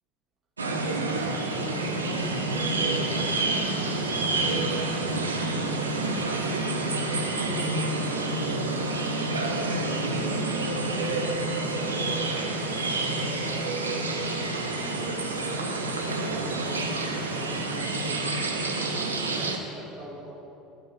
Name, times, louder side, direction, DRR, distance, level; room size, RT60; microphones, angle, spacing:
sound 1, 0.6-19.6, right 2 dB, 80° right, 0.6 m, -28 dB
voice 1, 0.8-6.3 7.0-8.9 9.3-12.7 13.1-13.8 14.4-18.3 18.7-20.4, right 1 dB, 30° right, -3 dB, 2.2 m, -42 dB
11.0 x 5.1 x 5.2 m, 2.7 s
figure-of-eight pair, 70°, 0 cm